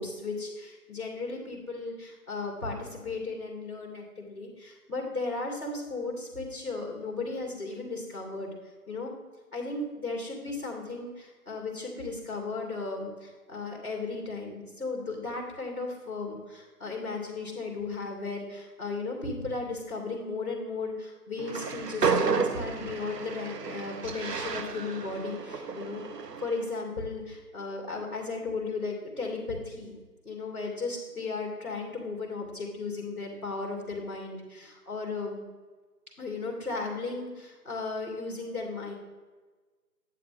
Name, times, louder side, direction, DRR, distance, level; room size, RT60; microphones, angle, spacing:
voice 1, 0.0-8.5 8.9-9.1 9.5-26.0 26.4-29.9 30.2-35.4 36.2-38.9, left 3 dB, 10° right, -12 dB, 1.4 m, -35 dB
Train, 21.4-26.7, right 5 dB, 90° right, 0.8 m, -32 dB
9.6 x 7.6 x 3.5 m, 1.3 s
figure-of-eight pair, 160°, 47 cm